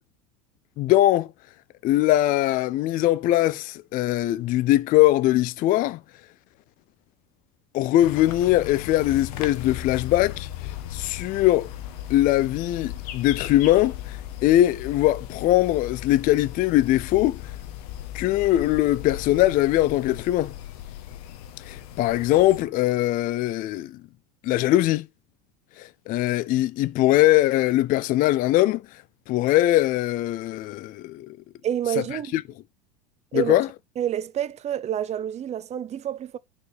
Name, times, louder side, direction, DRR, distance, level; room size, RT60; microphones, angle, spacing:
voice 1, 0.8-1.3 1.8-6.0 7.7-11.7 12.1-17.5 18.1-20.5 21.7-24.0 24.4-25.1 25.8-28.8 29.3-31.3 32.0-32.1 32.3-32.4 33.3-33.7, left 15 dB, 45° left, 0.4 m, -21 dB
sound 1, 8.0-22.6, left 12 dB, 75° left, 1.2 m, -37 dB
voice 2, 31.6-32.3 33.3-33.5 34.0-36.4, right 10 dB, 35° right, 0.7 m, -28 dB
9.0 x 4.7 x 3.4 m
hypercardioid pair, 100°, 20 cm